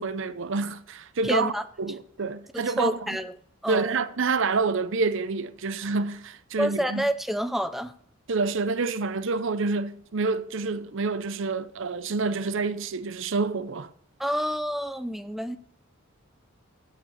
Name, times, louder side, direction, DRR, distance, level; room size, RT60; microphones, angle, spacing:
voice 1, 0.0-1.5 1.8-3.0 3.7-7.0 8.3-13.9, right 4 dB, 65° right, 0.7 m, -28 dB
voice 2, 1.2-1.6 2.5-3.4 3.6-4.0 6.6-7.9 14.2-15.6, equal, ahead, 0.4 m, -28 dB
14.5 x 5.0 x 7.9 m
head